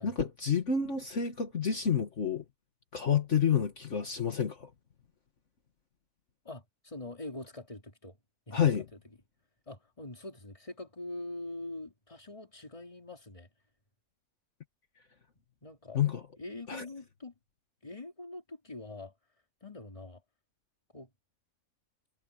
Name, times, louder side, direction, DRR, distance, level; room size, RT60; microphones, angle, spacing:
voice 1, 0.0-2.4 2.9-4.7 8.5-8.9 15.9-16.2 16.7-16.8, left 7 dB, 60° left, 1.9 m, -29 dB
voice 2, 6.4-8.2 8.5-8.6 9.7-13.5 15.6-16.0 16.4-17.3 17.8-19.1 19.6-20.2 20.9-21.1, left 2 dB, 25° left, 3.1 m, -43 dB
omnidirectional pair, 1.5 m